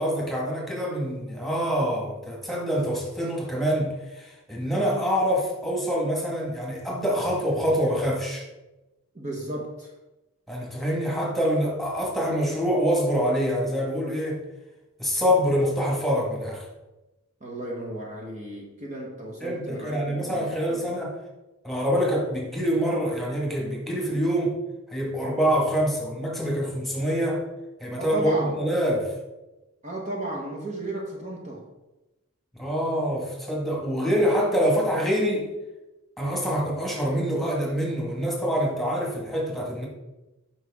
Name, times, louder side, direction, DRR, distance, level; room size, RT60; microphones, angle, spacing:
voice 1, 0.0-8.5 10.5-14.4 15.0-16.7 19.4-21.1 21.6-24.5 24.9-27.4 27.8-29.1 32.5-35.5 36.2-39.9, equal, ahead, -3 dB, 1.7 m, -25 dB
voice 2, 9.1-9.9 17.4-20.9 28.0-28.6 29.8-31.7, right 1 dB, 30° right, -2 dB, 1.2 m, -34 dB
9.2 x 5.8 x 3.6 m, 1.0 s
head